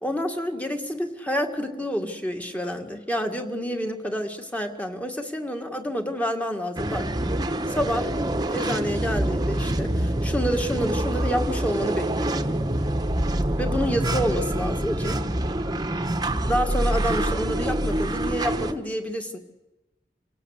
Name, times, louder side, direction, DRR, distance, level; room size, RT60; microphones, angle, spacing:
voice 1, 0.0-7.1 7.7-8.1 8.5-12.4 13.6-15.2 16.5-19.4, equal, 10° left, 5 dB, 2.1 m, -28 dB
sound 1, 6.8-18.7, right 1 dB, 25° right, 1.2 m, -26 dB
28.0 x 17.5 x 8.1 m, 1.1 s
head